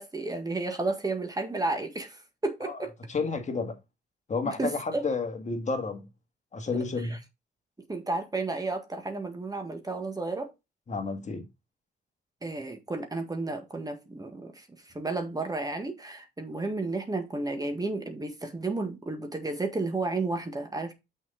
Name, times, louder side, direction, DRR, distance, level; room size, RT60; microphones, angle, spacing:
voice 1, 0.0-2.9 4.4-5.0 7.0-7.2 7.9-10.5 12.4-20.9, right 3 dB, 20° right, 1.7 m, -32 dB
voice 2, 3.1-3.7 4.3-6.1 6.5-7.1 10.9-11.4, left 4 dB, 35° left, 1.8 m, -31 dB
6.3 x 5.5 x 3.9 m
cardioid pair, 90°, 20 cm